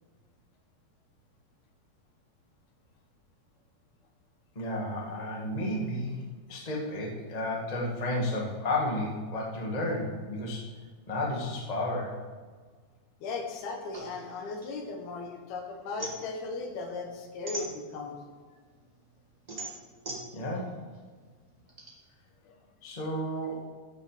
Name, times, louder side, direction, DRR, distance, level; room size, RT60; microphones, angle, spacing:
voice 1, 4.5-6.2 6.5-10.6 11.1-12.2 20.3-20.8 22.8-23.6, left 1 dB, 30° left, -2 dB, 0.6 m, -32 dB
voice 2, 13.2-18.2 22.4-22.6, left 3 dB, 75° left, 3 dB, 3.2 m, -37 dB
sound 1, 13.9-15.4 15.7-18.3 18.7-21.9, right 2 dB, 40° right, 0.5 m, -41 dB
14.5 x 6.5 x 5.1 m, 1.5 s
omnidirectional pair, 4.6 m